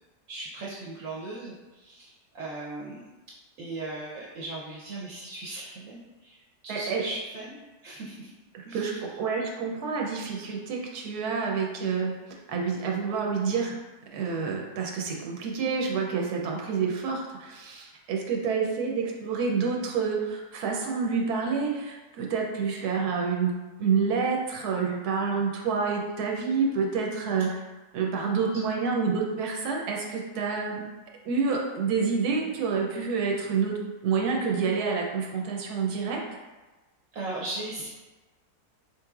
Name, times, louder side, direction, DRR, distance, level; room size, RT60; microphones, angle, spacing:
voice 1, 0.3-3.0 3.6-7.6 7.8-8.3 8.7-9.0 37.1-37.9, right 2 dB, 65° right, -5 dB, 0.9 m, -38 dB
voice 2, 6.7-7.0 8.7-12.1 12.5-13.8 14.1-23.5 23.8-27.5 27.9-30.8 31.2-33.7 34.0-36.2, right 5 dB, 85° right, -1 dB, 1.1 m, -28 dB
4.1 x 3.1 x 2.3 m, 1.2 s
omnidirectional pair, 1.7 m